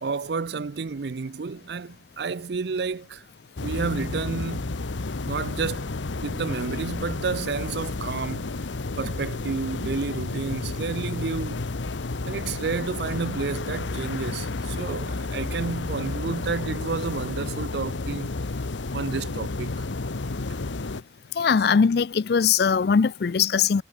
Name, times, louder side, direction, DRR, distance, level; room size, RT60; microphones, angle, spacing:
voice 1, 0.0-3.2 3.6-4.8 5.3-6.0 6.2-8.5 9.0-11.7 12.3-18.3 18.9-19.9, right 4 dB, 65° right, 0.5 m, -30 dB
sound 1, 3.6-21.0, left 3 dB, 90° left, 0.9 m, -31 dB
voice 2, 21.3-23.8, left 6 dB, 60° left, 0.4 m, -21 dB
head